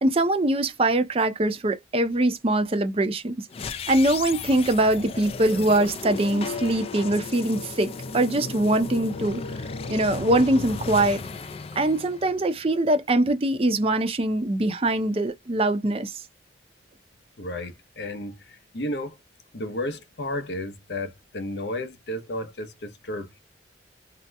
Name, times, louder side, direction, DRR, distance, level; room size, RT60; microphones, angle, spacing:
voice 1, 0.0-3.4 3.9-9.4 9.9-11.2 11.8-16.1, right 1 dB, 30° right, 0.5 m, -23 dB
sound 1, 3.5-12.7, left 4 dB, 35° left, 0.3 m, -35 dB
voice 2, 17.4-19.2 19.5-23.4, left 1 dB, 70° left, 0.7 m, -33 dB
2.8 x 2.0 x 3.3 m
head